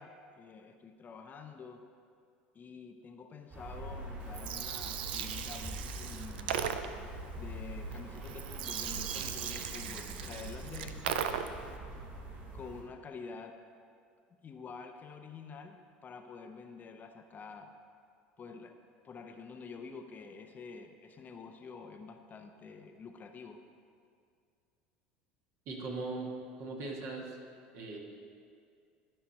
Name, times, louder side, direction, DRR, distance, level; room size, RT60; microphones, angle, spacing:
voice 1, 0.0-1.8 2.5-6.8 7.3-11.5 12.5-13.6 14.4-17.7 18.4-18.7 19.0-23.6, left 5 dB, 35° left, 5 dB, 0.7 m, -48 dB
sound 1, 3.5-12.8, right 1 dB, 40° right, 2.4 m, -44 dB
Gurgling, 4.2-11.7, right 8 dB, 80° right, 0.4 m, -38 dB
voice 2, 25.7-26.3 26.6-27.4 27.7-28.0, right 3 dB, 55° right, -1 dB, 1.7 m, -39 dB
12.0 x 5.7 x 4.2 m, 2.3 s
hypercardioid pair, 80°, 5 cm